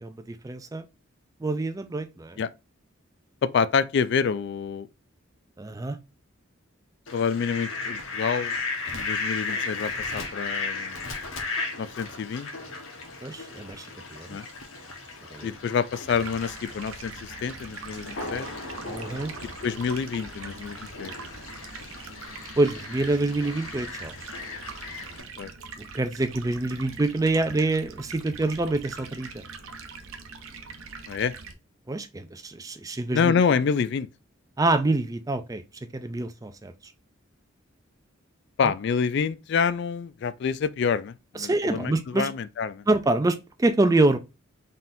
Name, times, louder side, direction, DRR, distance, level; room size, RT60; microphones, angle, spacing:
voice 1, 0.0-0.8 1.4-2.4 5.6-6.0 13.2-14.4 15.3-15.5 18.8-19.3 22.6-24.1 25.8-29.4 31.9-33.3 34.6-35.6 35.9-36.9 38.6-38.7 41.4-42.3 42.9-44.2, right 2 dB, 15° right, 0.4 m, -26 dB
voice 2, 3.4-4.9 7.1-8.5 8.9-11.0 11.8-12.5 14.3-14.5 15.4-18.5 19.6-21.1 25.4-25.5 31.1-31.3 33.1-34.1 38.6-42.8, left 6 dB, 55° left, 0.3 m, -27 dB
Fowl, 7.1-25.2, left 3 dB, 80° left, 1.3 m, -36 dB
Stream, 16.0-31.5, right 4 dB, 90° right, 0.7 m, -43 dB
4.0 x 3.7 x 2.6 m
head